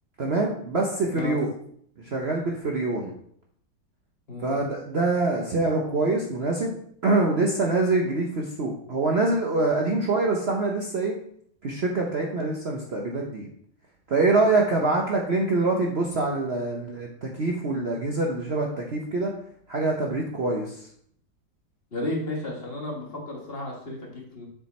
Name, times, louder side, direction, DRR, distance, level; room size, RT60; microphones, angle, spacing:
voice 1, 0.2-1.5 2.0-3.1 4.4-6.7 7.0-11.1 11.6-13.5 14.1-19.3 19.7-20.9, right 3 dB, 90° right, 0 dB, 0.5 m, -25 dB
voice 2, 21.9-24.5, left 2 dB, 30° left, -1 dB, 1.5 m, -33 dB
6.9 x 5.0 x 4.2 m, 0.65 s
omnidirectional pair, 2.3 m